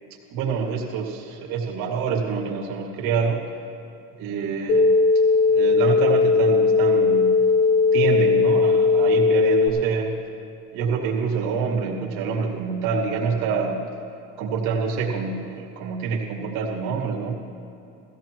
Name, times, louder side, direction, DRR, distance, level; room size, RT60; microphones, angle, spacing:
voice 1, 0.3-3.4 4.2-4.9 5.5-7.4 7.9-10.1 10.7-13.9 14.4-17.3, right 5 dB, 65° right, -2 dB, 2.4 m, -26 dB
sound 1, 4.7-9.7, left 4 dB, 70° left, 1.8 m, -18 dB
16.5 x 16.0 x 3.1 m, 2.8 s
supercardioid pair, 125°, 39 cm